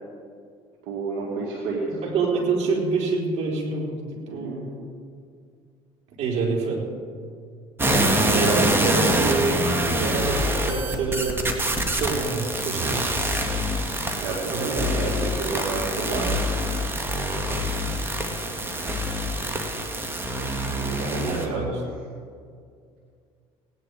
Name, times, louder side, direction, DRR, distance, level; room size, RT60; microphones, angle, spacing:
voice 1, 0.8-2.0 4.3-4.6 14.2-16.5 20.7-21.6, right 4 dB, 80° right, -3 dB, 2.2 m, -30 dB
voice 2, 2.0-4.7 6.2-6.8 8.3-9.6 9.9-11.4 11.9-13.0 14.5-14.7 21.0-21.7, right 4 dB, 55° right, -3 dB, 4.3 m, -27 dB
sound 1, 7.8-21.5, right 1 dB, 15° right, 2.0 m, -25 dB
17.5 x 10.0 x 5.0 m, 2.2 s
supercardioid pair, 85°, 13 cm